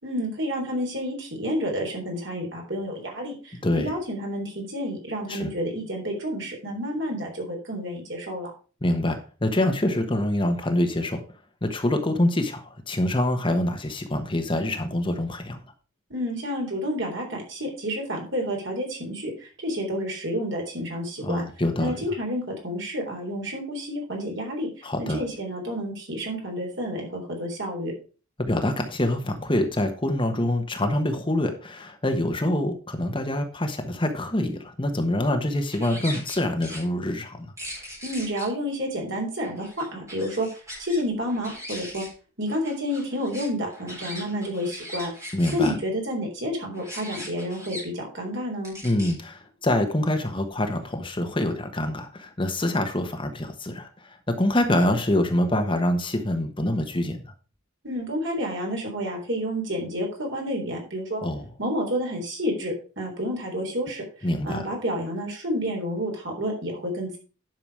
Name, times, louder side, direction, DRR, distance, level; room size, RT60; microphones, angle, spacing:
voice 1, 0.0-8.5 16.1-21.4 21.8-24.7 25.0-27.9 38.0-40.5 40.8-42.0 42.4-45.1 45.5-48.8 57.8-61.2 61.6-64.0 64.4-67.2, equal, 60° right, 1 dB, 3.8 m, -30 dB
voice 2, 8.8-11.2 11.6-15.6 21.2-22.0 24.8-25.2 28.4-37.5 45.3-45.8 48.8-57.3 61.2-61.4 64.2-64.6, left 1 dB, 25° left, 5 dB, 1.1 m, -25 dB
sound 1, 35.7-36.8 37.6-38.4 39.4-41.0 41.3-42.1 42.5-45.7 46.7-47.8 48.6-49.1, equal, 15° right, 4.1 m, -39 dB
10.5 x 5.9 x 4.8 m, 0.36 s
head